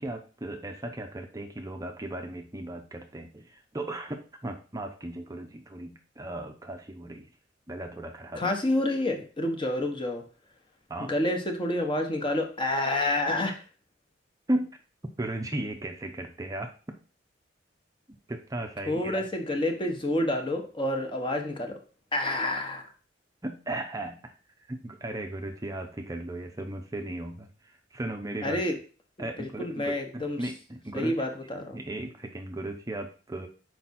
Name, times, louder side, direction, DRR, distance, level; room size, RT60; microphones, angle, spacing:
voice 1, 0.0-7.3 7.7-8.5 10.9-11.1 14.5-14.8 15.2-16.7 18.3-19.2 23.4-24.4 24.7-28.6 29.2-31.2 31.7-33.5, right 1 dB, 20° right, 4 dB, 0.6 m, -36 dB
voice 2, 8.4-10.2 11.1-13.6 18.9-21.8 22.1-22.9 28.4-28.8 29.2-30.4 30.9-31.8, left 1 dB, 25° left, 3 dB, 1.0 m, -28 dB
5.9 x 4.7 x 4.2 m, 0.38 s
head